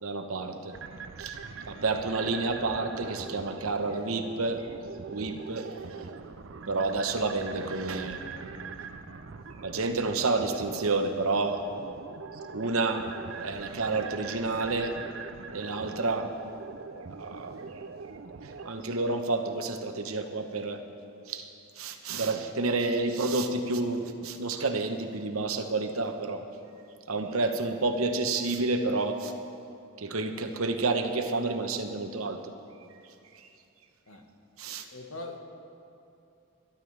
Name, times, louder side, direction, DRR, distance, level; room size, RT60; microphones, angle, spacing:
voice 1, 0.0-0.8 1.2-1.4 1.7-4.7 5.1-5.7 6.7-8.2 9.6-11.6 12.5-15.0 15.5-16.3 17.2-17.7 18.6-20.8 21.3-21.5 21.8-26.4 27.1-29.3 30.0-32.4 34.6-34.9, right 3 dB, 90° right, 6 dB, 1.0 m, -29 dB
sound 1, 0.7-18.7, right 5 dB, 60° right, 0.5 m, -42 dB
voice 2, 34.9-35.4, left 2 dB, 80° left, 3 dB, 1.4 m, -40 dB
22.0 x 11.5 x 3.3 m, 2.7 s
head